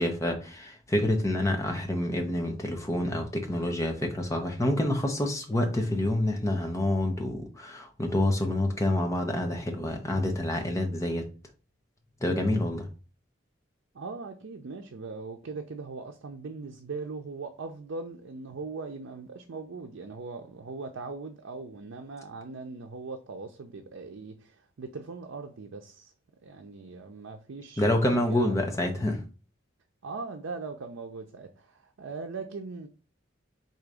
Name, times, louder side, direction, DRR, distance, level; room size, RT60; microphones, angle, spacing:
voice 1, 0.0-11.3 12.2-12.9 27.8-29.2, left 1 dB, 15° left, 0.8 m, -27 dB
voice 2, 13.9-26.1 26.4-28.7 30.0-32.9, right 4 dB, 85° right, 0.5 m, -40 dB
3.9 x 2.8 x 4.7 m
head